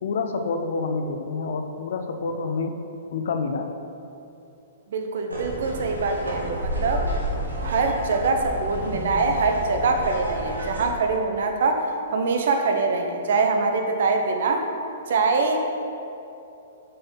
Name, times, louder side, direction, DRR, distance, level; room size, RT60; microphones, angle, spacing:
voice 1, 0.0-2.8 3.1-3.7, left 4 dB, 55° left, 6 dB, 0.5 m, -28 dB
voice 2, 4.9-7.1 7.6-14.7 15.1-15.7, right 3 dB, 55° right, 4 dB, 0.7 m, -24 dB
sound 1, 5.3-10.9, equal, 80° right, 1.4 m, -31 dB
6.8 x 5.4 x 3.9 m, 2.8 s
figure-of-eight pair, 110°, 0 cm